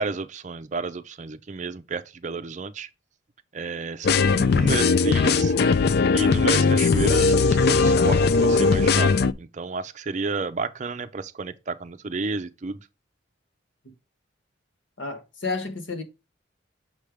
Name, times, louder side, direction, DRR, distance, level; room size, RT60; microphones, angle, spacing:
voice 1, 0.0-2.9 3.5-5.5 6.1-12.8, right 4 dB, 35° right, 0.5 m, -31 dB
sound 1, 4.0-9.3, left 4 dB, 50° left, 0.3 m, -19 dB
voice 2, 15.0-16.0, left 3 dB, 70° left, 1.4 m, -31 dB
6.5 x 3.3 x 4.9 m
head